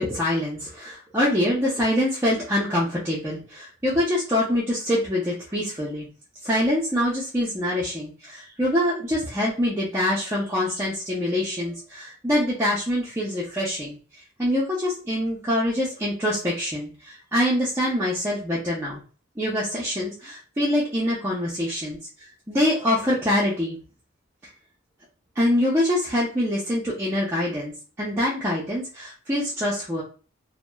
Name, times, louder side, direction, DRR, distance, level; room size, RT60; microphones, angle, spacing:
voice 1, 0.0-6.1 6.4-14.0 14.4-19.0 19.4-22.0 22.5-23.8 25.4-27.7 28.0-30.0, left 1 dB, 10° right, -7 dB, 0.5 m, -25 dB
2.7 x 2.0 x 2.2 m, 0.37 s
head